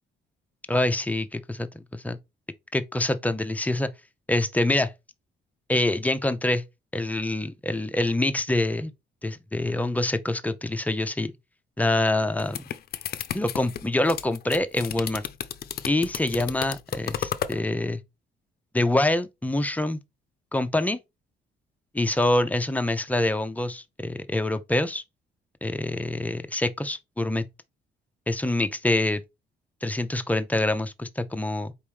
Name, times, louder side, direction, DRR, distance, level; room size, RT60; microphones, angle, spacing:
voice 1, 0.7-1.2 1.7-2.2 2.7-3.9 4.3-4.9 5.7-6.6 6.9-8.9 9.2-11.3 11.8-12.6 13.3-15.2 15.8-18.0 18.7-20.0 20.5-21.0 21.9-25.0 25.6-27.4 28.3-29.2 29.8-31.7, left 1 dB, 10° left, 0.5 m, -25 dB
sound 1, 12.2-17.6, left 9 dB, 50° left, 0.5 m, -33 dB
4.5 x 3.0 x 3.4 m
cardioid pair, 90°, 20 cm